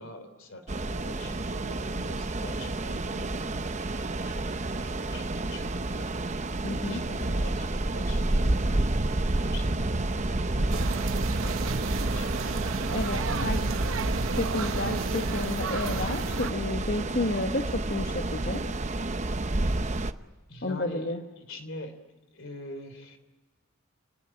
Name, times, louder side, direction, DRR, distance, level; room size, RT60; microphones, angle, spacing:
voice 1, 0.0-6.1 6.8-8.6 9.1-12.7 13.1-13.9 20.5-22.0 22.3-23.2, left 2 dB, 65° left, 10 dB, 3.5 m, -45 dB
sound 1, 0.7-20.1, right 2 dB, 35° right, 0.8 m, -29 dB
voice 2, 6.6-7.0 12.9-13.6 14.3-18.6 20.6-21.2, left 2 dB, 50° left, 4 dB, 1.5 m, -31 dB
sound 2, 10.7-16.5, right 4 dB, 70° right, 0.9 m, -33 dB
29.5 x 20.0 x 9.0 m, 1.2 s
head